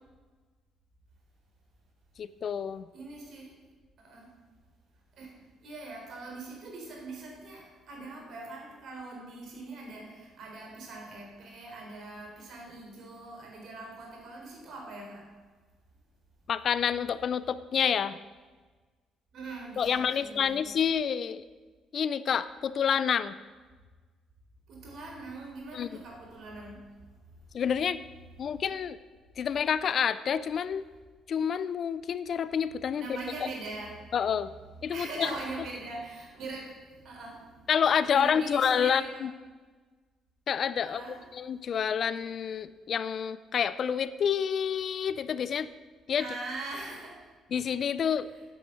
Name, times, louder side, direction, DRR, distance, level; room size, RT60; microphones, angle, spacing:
voice 1, 2.2-2.9 16.5-18.2 19.8-21.4 21.9-23.3 25.7-26.0 27.5-28.0 28.4-29.0 29.4-30.8 31.3-33.5 34.1-34.5 34.8-35.3 37.7-39.3 40.5-41.0 41.3-45.7 46.1-46.3 47.5-48.3, left 7 dB, 55° left, 15 dB, 0.5 m, -28 dB
voice 2, 2.9-3.5 4.0-4.3 5.1-5.3 5.6-15.3 19.3-20.6 24.7-26.8 33.0-34.1 34.8-37.5 38.1-39.2 40.8-41.2 46.2-47.2, right 3 dB, 65° right, -1 dB, 3.8 m, -42 dB
9.3 x 8.4 x 6.1 m, 1.4 s
hypercardioid pair, 55°, 0 cm